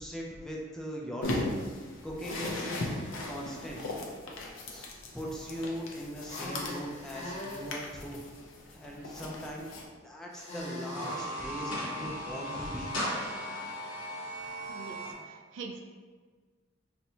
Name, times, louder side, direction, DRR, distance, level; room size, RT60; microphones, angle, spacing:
voice 1, 0.0-1.5 1.8-2.8 3.3-3.8 4.7-4.9 5.1-8.2 8.7-12.9, equal, 5° left, -3 dB, 0.4 m, -40 dB
sound 1, 1.2-9.9, left 2 dB, 85° left, 0.5 m, -38 dB
sound 2, 2.2-3.7 6.2-7.7 10.3-11.2, left 1 dB, 35° left, 0.8 m, -42 dB
sound 3, 10.8-15.1, equal, 70° left, 1.0 m, -37 dB
voice 2, 14.7-15.8, right 4 dB, 70° right, 3 dB, 0.4 m, -44 dB
4.2 x 2.1 x 2.7 m, 1.5 s
head